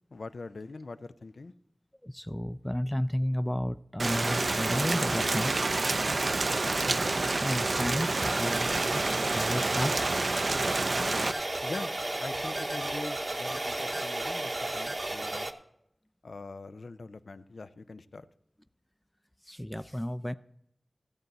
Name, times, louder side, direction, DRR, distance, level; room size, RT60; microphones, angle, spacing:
voice 1, 0.1-1.5 11.6-15.5 16.2-18.3, left 3 dB, 85° left, 0.4 m, -43 dB
voice 2, 2.0-5.5 7.4-10.1 19.5-20.3, equal, 10° left, 0.3 m, -32 dB
Rain, 4.0-11.3, right 3 dB, 70° right, 0.4 m, -28 dB
sound 1, 8.2-15.5, right 1 dB, 40° right, 0.8 m, -33 dB
16.0 x 7.8 x 4.0 m
wide cardioid pair, 50°, 0 cm